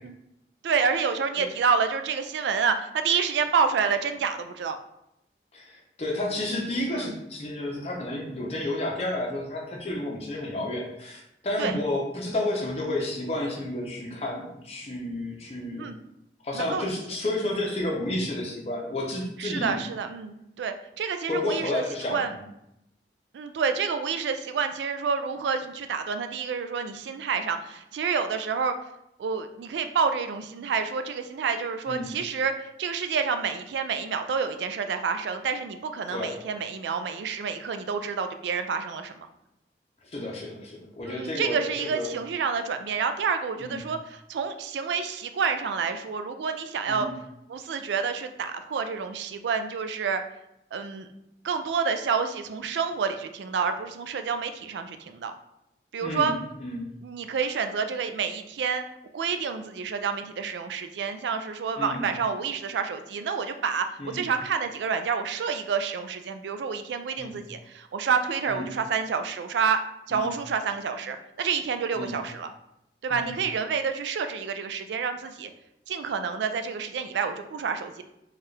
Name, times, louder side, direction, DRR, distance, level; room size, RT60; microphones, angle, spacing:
voice 1, 0.6-4.8 6.9-7.2 11.6-11.8 15.8-16.0 16.5-17.0 17.4-17.5 19.4-21.8 22.1-22.3 23.3-28.8 29.2-39.3 41.1-47.1 47.5-50.2 50.7-51.1 51.4-55.3 55.9-56.3 57.0-58.8 59.1-69.8 70.1-72.5 73.0-75.5 75.9-78.0, right 6 dB, 85° right, 8 dB, 0.3 m, -28 dB
voice 2, 5.5-15.9 16.4-19.8 21.3-22.4 31.9-32.1 36.1-36.4 40.0-42.1 43.6-43.9 46.9-47.1 56.0-56.9 61.8-62.0 64.0-64.2 67.2-67.4 68.5-68.7 70.1-70.3 71.9-72.1 73.1-73.3, left 1 dB, 35° left, -1 dB, 0.7 m, -31 dB
4.4 x 2.4 x 3.2 m, 0.81 s
head